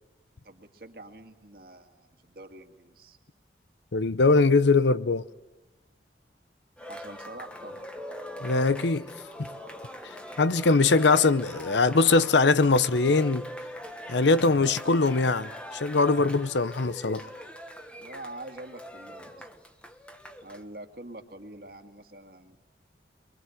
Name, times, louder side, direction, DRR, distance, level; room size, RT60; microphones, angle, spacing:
voice 1, 0.4-3.2 6.8-7.9 18.0-19.5 20.4-22.6, right 1 dB, 55° right, 2.1 m, -45 dB
voice 2, 3.9-5.2 8.4-9.1 9.4-9.5 10.4-13.5 14.1-17.2, left 3 dB, 85° left, 0.8 m, -22 dB
Cheering, 6.8-20.6, equal, 5° left, 1.4 m, -42 dB
24.0 x 23.5 x 7.9 m
head